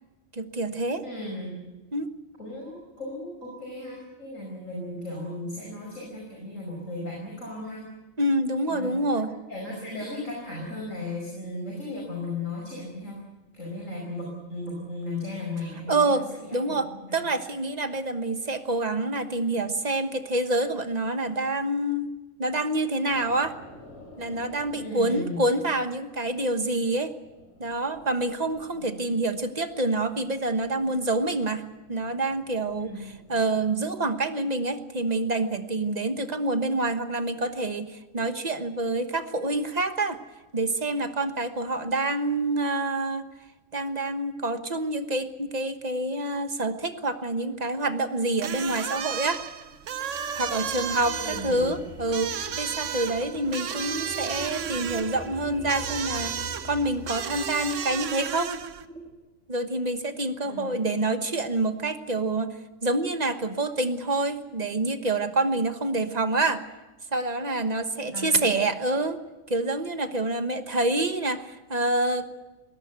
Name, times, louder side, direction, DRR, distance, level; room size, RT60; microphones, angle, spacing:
voice 1, 0.3-1.0 1.9-2.1 8.2-9.3 15.9-16.2 16.5-22.1 22.4-23.6 24.2-27.1 27.6-32.9 33.3-40.2 40.5-43.2 43.7-49.4 50.3-58.6 59.5-66.7 67.1-69.2 69.5-72.3, right 2 dB, 35° right, 8 dB, 1.4 m, -27 dB
voice 2, 1.0-1.5 2.4-7.8 8.7-13.2 13.5-17.2 24.7-25.5 28.7-28.9 32.8-33.0 33.3-33.4 51.2-51.7 60.4-60.7 68.1-68.6, left 2 dB, 80° left, -1 dB, 5.9 m, -36 dB
sound 1, 23.0-28.7 29.0-29.5 29.9-33.8, left 1 dB, 60° left, 7.7 m, -52 dB
sound 2, 48.4-58.9, right 8 dB, 70° right, 1.2 m, -33 dB
sound 3, 49.7-59.1, left 1 dB, 5° left, 3.2 m, -44 dB
21.0 x 18.5 x 8.2 m, 1.1 s
omnidirectional pair, 1.3 m